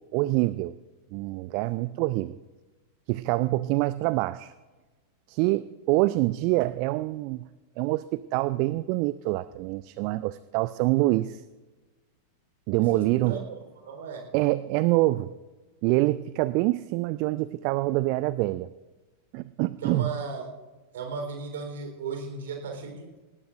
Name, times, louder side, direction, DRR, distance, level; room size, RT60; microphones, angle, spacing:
voice 1, 0.1-0.7 1.1-2.4 3.1-4.5 5.3-7.4 7.8-11.4 12.7-13.4 14.3-15.3 15.8-18.7 19.3-20.1, right 19 dB, 45° right, 17 dB, 0.4 m, -25 dB
voice 2, 12.9-13.5 13.8-14.2 19.8-20.4 20.9-23.1, right 4 dB, 60° right, 3 dB, 4.0 m, -35 dB
19.5 x 18.5 x 2.6 m, 1.2 s
figure-of-eight pair, 90°, 0 cm